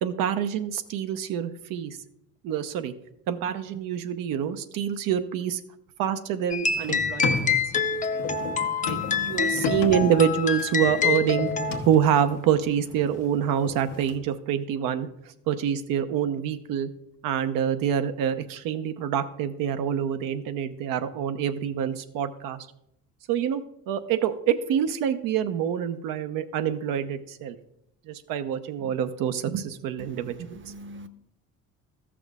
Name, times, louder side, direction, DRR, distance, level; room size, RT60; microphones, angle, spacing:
voice 1, 0.0-2.0 2.4-2.9 3.3-5.6 6.0-7.5 8.1-8.2 8.9-11.5 11.9-15.1 15.5-16.9 17.2-22.7 23.3-27.6 28.1-30.6, right 9 dB, 75° right, 10 dB, 0.8 m, -26 dB
sound 1, 6.5-11.8, left 5 dB, 20° left, 0.7 m, -26 dB
sound 2, 6.6-14.2, left 5 dB, 90° left, 1.2 m, -35 dB
voice 2, 8.8-9.4 30.7-31.1, equal, 35° right, 12 dB, 0.9 m, -40 dB
14.0 x 6.1 x 3.6 m, 0.78 s
supercardioid pair, 70°, 34 cm